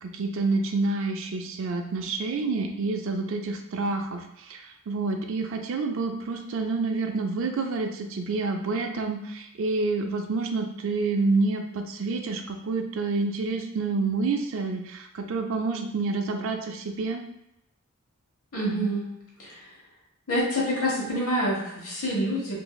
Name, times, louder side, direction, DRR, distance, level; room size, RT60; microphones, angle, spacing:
voice 1, 0.0-17.2, right 3 dB, 60° right, 4 dB, 0.4 m, -28 dB
voice 2, 18.5-19.1 19.4-19.7 20.3-22.6, equal, 75° left, -4 dB, 1.1 m, -27 dB
3.1 x 2.6 x 2.3 m, 0.83 s
head